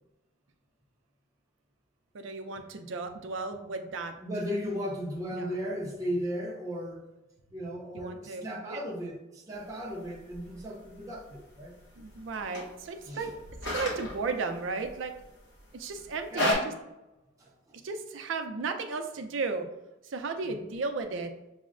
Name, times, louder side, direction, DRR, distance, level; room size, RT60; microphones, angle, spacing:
voice 1, 2.1-4.1 5.3-5.5 7.9-8.8 12.0-13.3 13.6-15.1 15.7-16.6 17.8-19.7 20.1-21.3, right 4 dB, 75° right, 7 dB, 0.5 m, -34 dB
voice 2, 4.2-7.0 7.5-11.7 13.0-13.3 16.3-16.5 17.4-17.5 20.4-20.6, equal, 15° right, -3 dB, 0.5 m, -36 dB
sound 1, 9.5-16.5, left 1 dB, 60° left, 1.1 m, -36 dB
6.0 x 2.1 x 2.5 m, 0.97 s
head